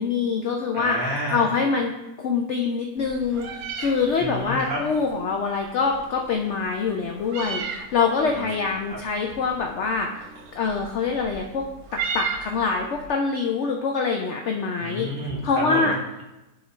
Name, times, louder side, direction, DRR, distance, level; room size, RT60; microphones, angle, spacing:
voice 1, 0.0-1.0 1.3-1.9 2.2-10.1 10.5-11.6 12.1-15.1 15.4-16.0, left 5 dB, 70° left, 2 dB, 0.7 m, -25 dB
voice 2, 0.7-1.4 4.2-4.8 8.2-9.0 14.8-16.2, equal, 35° right, -3 dB, 1.2 m, -31 dB
Meow, 3.0-13.1, right 5 dB, 60° right, 0.8 m, -37 dB
10.0 x 3.7 x 3.2 m, 0.99 s
omnidirectional pair, 1.8 m